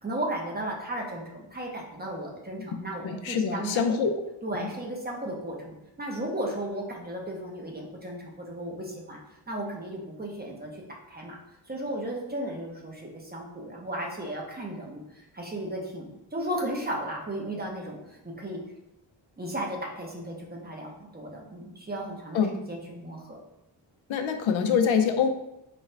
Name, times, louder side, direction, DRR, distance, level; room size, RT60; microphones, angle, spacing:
voice 1, 0.0-3.8 4.4-9.2 9.5-10.8 11.1-11.4 11.7-18.6 19.4-23.4, right 1 dB, 20° right, -1 dB, 0.7 m, -35 dB
voice 2, 2.7-4.2 22.3-22.6 24.1-25.3, left 6 dB, 80° left, 5 dB, 0.6 m, -25 dB
4.2 x 2.4 x 3.2 m, 0.89 s
wide cardioid pair, 125°, 46 cm